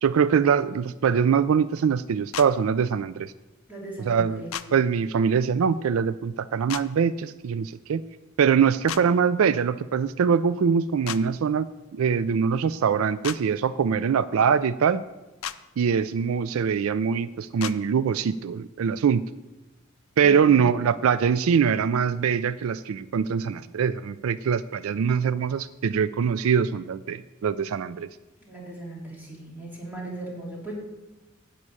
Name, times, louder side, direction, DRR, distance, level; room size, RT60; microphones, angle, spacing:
voice 1, 0.0-3.3 4.0-8.0 8.4-11.7 11.9-15.0 15.8-19.3 20.2-28.1, right 7 dB, 80° right, 16 dB, 0.4 m, -23 dB
sound 1, 2.3-2.5 4.5-4.7 6.7-6.8 8.9-9.0 11.0-11.2 13.2-13.4 15.4-15.6 17.6-17.8, left 11 dB, 80° left, 0.5 m, -32 dB
voice 2, 3.7-4.8 20.2-20.7 28.5-30.7, right 2 dB, 10° right, -4 dB, 3.4 m, -38 dB
11.0 x 5.5 x 8.6 m, 1.1 s
head